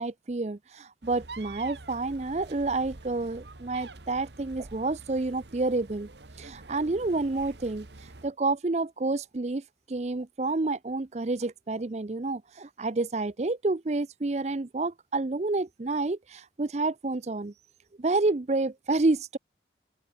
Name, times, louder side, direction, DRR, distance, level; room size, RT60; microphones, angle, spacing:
voice 1, 0.0-6.1 6.4-17.5 18.0-19.4, right 3 dB, 40° right, 0.6 m, -29 dB
sound 1, 1.0-8.3, right 3 dB, 75° right, 1.6 m, -47 dB
open air
head